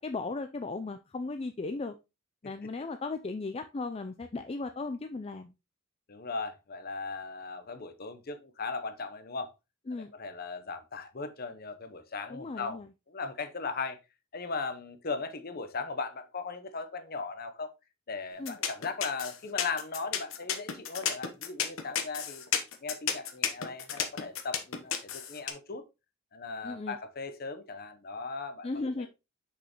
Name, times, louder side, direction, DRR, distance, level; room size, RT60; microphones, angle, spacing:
voice 1, 0.0-2.0 2.4-5.5 9.9-10.1 12.3-12.9 18.4-18.6 26.6-27.0 28.6-29.1, left 3 dB, 30° left, 0.4 m, -36 dB
voice 2, 6.1-9.5 9.9-12.8 13.1-14.0 14.3-17.7 18.1-22.4 22.8-25.8 26.3-29.1, left 4 dB, 45° left, 0.9 m, -38 dB
sound 1, 18.5-25.5, left 8 dB, 85° left, 1.0 m, -32 dB
6.3 x 5.5 x 3.0 m
head